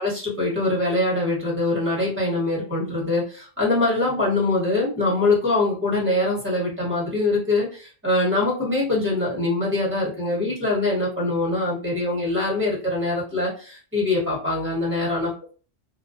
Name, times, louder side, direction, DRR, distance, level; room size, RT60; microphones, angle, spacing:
voice 1, 0.0-15.3, left 2 dB, 10° right, -4 dB, 1.2 m, -23 dB
2.3 x 2.2 x 2.5 m, 0.38 s
omnidirectional pair, 1.1 m